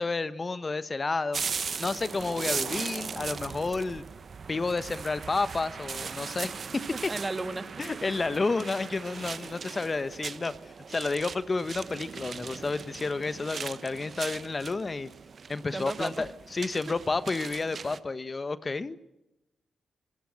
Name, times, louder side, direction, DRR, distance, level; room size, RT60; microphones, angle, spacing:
voice 1, 0.0-1.4 1.8-4.0 4.5-7.1 7.8-10.5 10.9-15.1 15.5-19.0, left 3 dB, 40° left, 14 dB, 1.2 m, -31 dB
sound 1, 1.3-18.0, right 5 dB, 55° right, 1.0 m, -38 dB
voice 2, 6.9-7.7 15.7-16.3, right 2 dB, 30° right, 11 dB, 1.8 m, -34 dB
25.0 x 15.5 x 7.8 m, 0.93 s
supercardioid pair, 45°, 0 cm